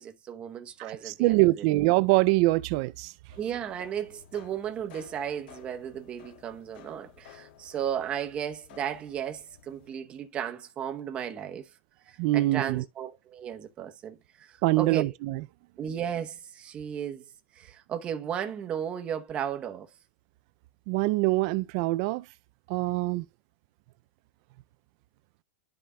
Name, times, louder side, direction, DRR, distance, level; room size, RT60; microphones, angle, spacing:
voice 1, 0.0-1.4 3.4-11.7 12.1-15.1 15.8-17.3 17.5-19.9, right 9 dB, 20° right, 0.8 m, -35 dB
voice 2, 0.8-3.1 12.2-12.8 14.6-15.4 20.9-22.3 22.7-23.2, right 20 dB, 35° right, 0.3 m, -24 dB
sound 1, 3.3-9.9, left 9 dB, 65° left, 2.5 m, -54 dB
12.5 x 4.9 x 2.2 m
supercardioid pair, 170°, 6 cm